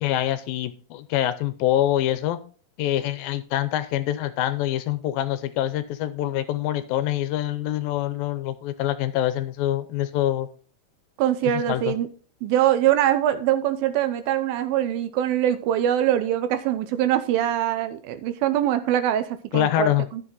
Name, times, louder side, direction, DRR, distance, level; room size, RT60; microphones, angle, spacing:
voice 1, 0.0-2.4 2.8-10.5 11.5-11.9 19.5-20.1, left 13 dB, 80° left, 13 dB, 2.4 m, -25 dB
voice 2, 11.2-12.1 12.4-20.2, right 11 dB, 85° right, 11 dB, 2.6 m, -23 dB
11.5 x 7.5 x 3.9 m, 0.40 s
omnidirectional pair, 4.2 m